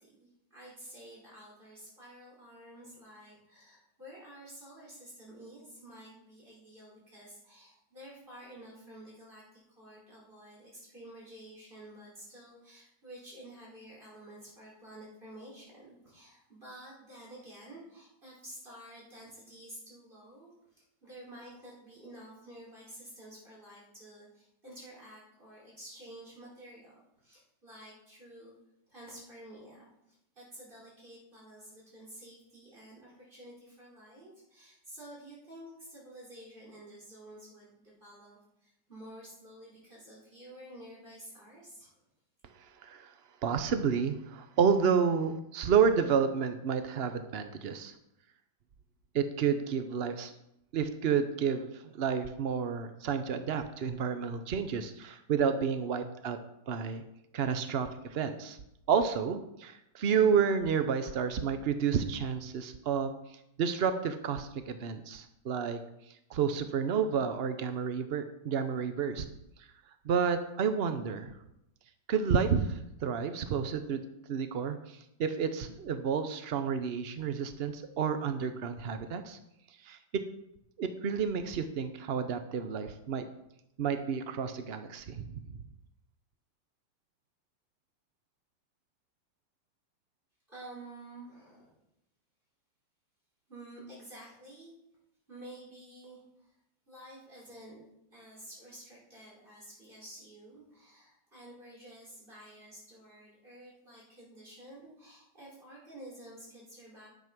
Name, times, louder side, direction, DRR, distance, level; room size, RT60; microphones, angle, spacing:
voice 1, 0.0-28.5 28.9-42.0 90.5-91.8 93.5-94.7 95.3-96.5 96.8-97.8 98.1-107.1, right 1 dB, 25° right, -5 dB, 4.9 m, -51 dB
voice 2, 42.8-43.1 43.4-47.9 49.1-50.3 50.7-56.4 56.7-57.0 57.3-58.6 58.9-65.8 66.3-69.3 70.0-71.3 72.1-74.0 74.3-79.4 79.8-80.2 80.8-83.3 83.8-85.4, right 6 dB, 70° right, 9 dB, 0.5 m, -30 dB
11.0 x 7.2 x 6.0 m, 0.82 s
omnidirectional pair, 2.0 m